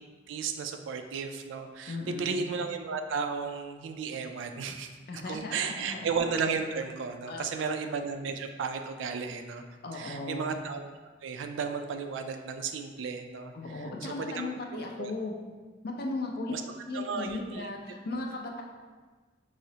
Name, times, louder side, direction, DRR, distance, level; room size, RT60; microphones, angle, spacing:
voice 1, 0.3-4.9 5.2-9.6 9.9-10.8 11.2-15.1 16.5-16.6 16.9-17.7, right 5 dB, 80° right, 6 dB, 0.3 m, -34 dB
voice 2, 1.9-2.4 5.1-6.0 7.3-7.7 9.8-10.4 13.5-15.3 15.8-16.5 16.8-18.6, left 2 dB, 55° left, 1 dB, 0.4 m, -36 dB
4.7 x 2.0 x 2.7 m, 1.4 s
head